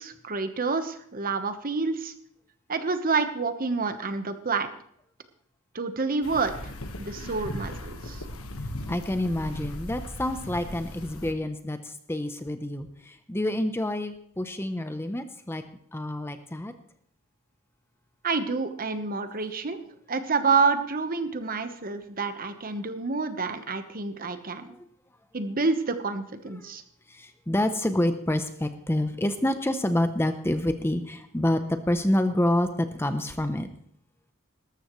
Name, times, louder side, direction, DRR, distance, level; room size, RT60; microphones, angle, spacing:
voice 1, 0.0-2.1 2.7-4.7 5.7-6.7 7.0-8.2 18.2-19.8 20.1-24.7 25.3-26.8, right 4 dB, 40° right, 9 dB, 1.1 m, -28 dB
sound 1, 6.2-11.3, left 1 dB, 70° left, 1.5 m, -38 dB
voice 2, 8.9-15.6 15.9-16.7 24.7-24.9 26.5-26.7 27.1-33.7, left 1 dB, 10° left, 8 dB, 0.8 m, -28 dB
19.0 x 13.5 x 3.2 m, 0.67 s
head